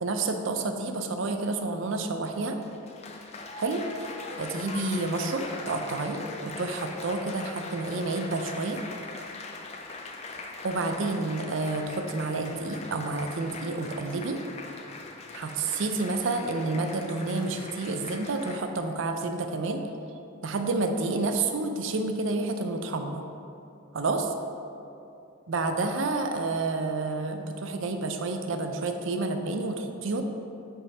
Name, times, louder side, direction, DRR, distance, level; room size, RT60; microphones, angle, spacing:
voice 1, 0.0-2.6 3.6-3.8 4.4-8.8 10.6-14.4 15.3-19.8 20.4-23.2 23.9-24.3 25.5-30.2, right 3 dB, 65° right, 6 dB, 0.5 m, -29 dB
Applause, 2.4-18.6, left 3 dB, 30° left, 0.4 m, -41 dB
5.4 x 3.6 x 5.4 m, 2.7 s
head